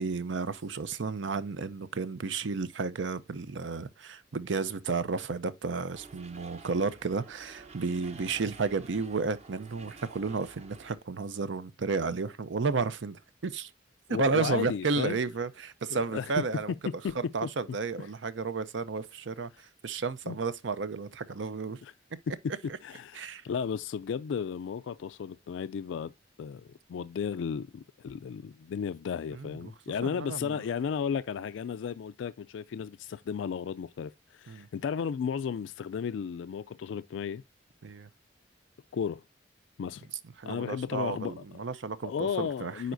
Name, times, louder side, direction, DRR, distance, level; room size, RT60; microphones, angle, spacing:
voice 1, 0.0-13.7 14.1-16.7 17.2-19.5 19.8-21.8 23.2-23.4 29.3-29.7 30.0-30.6 34.5-34.7 37.8-38.1 40.4-42.9, right 4 dB, 80° right, 0.6 m, -32 dB
sound 1, 5.9-11.0, right 3 dB, 35° right, 0.8 m, -51 dB
voice 2, 14.1-15.2 15.9-16.4 16.9-17.5 20.3-20.4 21.8-21.9 22.3-22.4 22.8-26.1 26.4-37.4 38.9-39.2 39.8-40.0 40.4-41.4 42.0-42.9, left 7 dB, 80° left, 0.3 m, -34 dB
9.3 x 4.1 x 2.6 m
head